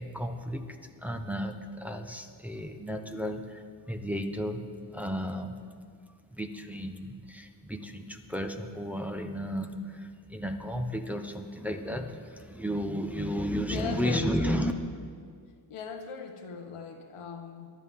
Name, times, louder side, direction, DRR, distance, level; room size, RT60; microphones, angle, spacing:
voice 1, 0.0-4.6 4.9-5.6 6.3-14.7, equal, 5° right, 4 dB, 1.0 m, -33 dB
voice 2, 13.7-14.7 15.7-17.7, left 5 dB, 85° left, 4 dB, 1.5 m, -39 dB
23.0 x 11.0 x 3.7 m, 2.1 s
cardioid pair, 80°, 50 cm